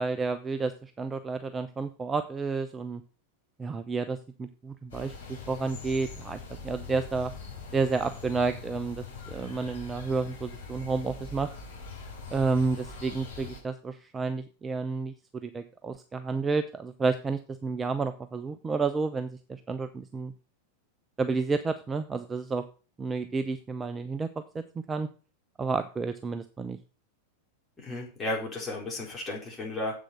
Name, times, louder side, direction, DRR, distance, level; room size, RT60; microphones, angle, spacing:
voice 1, 0.0-3.0 3.6-7.3 7.7-11.5 12.3-15.1 15.4-20.3 21.2-22.6 23.0-25.1 25.6-26.8, right 4 dB, 15° right, 10 dB, 0.6 m, -31 dB
sound 1, 4.9-13.6, left 4 dB, 65° left, 5.5 m, -42 dB
voice 2, 27.8-29.9, left 1 dB, 20° left, -2 dB, 4.4 m, -34 dB
7.9 x 6.4 x 6.4 m, 0.36 s
figure-of-eight pair, 90°, 0 cm